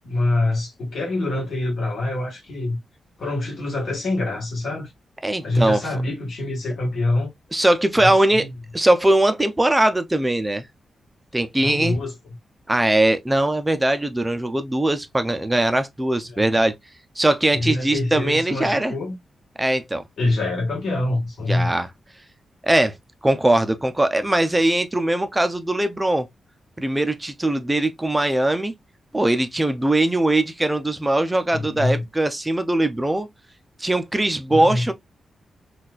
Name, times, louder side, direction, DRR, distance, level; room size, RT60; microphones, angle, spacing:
voice 1, 0.0-2.8 3.2-4.9 5.4-7.3 7.9-8.5 11.6-12.1 16.3-16.6 17.5-19.1 20.2-21.7 31.5-32.0 34.5-34.8, left 2 dB, 60° left, 1.4 m, -25 dB
voice 2, 5.2-5.8 7.5-8.5 8.7-10.6 11.3-12.0 12.7-16.7 17.2-18.9 19.6-20.0 21.5-21.9 22.6-22.9 23.2-26.3 26.8-28.7 29.1-33.3 33.8-34.9, right 1 dB, 10° right, 0.4 m, -20 dB
4.1 x 2.3 x 2.3 m
wide cardioid pair, 155°, 0 cm